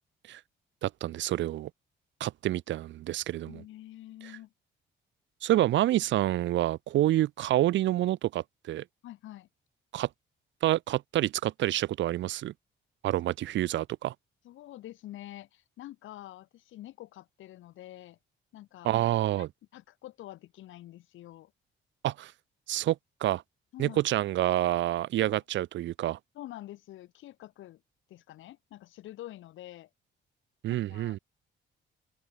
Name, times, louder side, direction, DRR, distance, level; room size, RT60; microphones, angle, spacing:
voice 1, 0.8-1.7 2.2-3.6 5.4-8.8 9.9-10.1 10.6-12.5 13.0-14.1 18.8-19.5 22.0-22.3 22.7-23.0 23.2-23.4 23.8-26.2 30.6-31.2, right 14 dB, 70° right, 0.5 m, -28 dB
voice 2, 3.4-4.5 9.0-9.5 14.4-18.2 18.5-18.9 19.3-19.5 19.7-21.5 23.7-24.0 25.3-25.4 26.3-27.8 28.1-29.9 30.7-31.2, left 14 dB, 80° left, 1.2 m, -47 dB
open air
cardioid pair, 90°, 20 cm